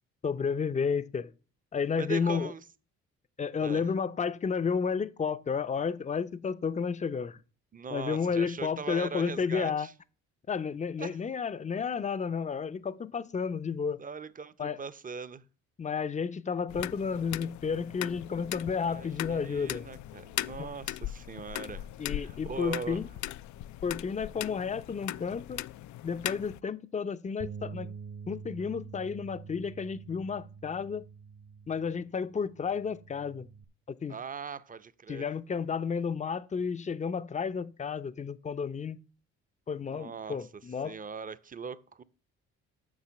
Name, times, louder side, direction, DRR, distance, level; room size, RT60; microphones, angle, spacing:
voice 1, 0.2-1.3 1.7-2.5 3.4-7.4 7.9-9.9 10.5-14.0 14.6-14.8 15.8-19.9 20.6-20.7 22.0-23.1 23.8-25.6 26.0-27.9 28.3-31.0 31.7-33.5 34.0-34.2 35.1-39.0 39.7-41.0, left 6 dB, 25° left, 0.6 m, -32 dB
voice 2, 2.0-2.6 3.6-3.9 7.7-9.9 11.0-11.2 14.0-15.4 18.8-23.0 34.1-35.3 39.8-40.5 40.8-42.0, right 5 dB, 25° right, 0.7 m, -40 dB
sound 1, 16.7-26.6, left 14 dB, 70° left, 0.4 m, -39 dB
Bass guitar, 27.4-33.6, right 6 dB, 45° right, 1.0 m, -46 dB
7.4 x 6.0 x 7.0 m
cardioid pair, 90°, 30 cm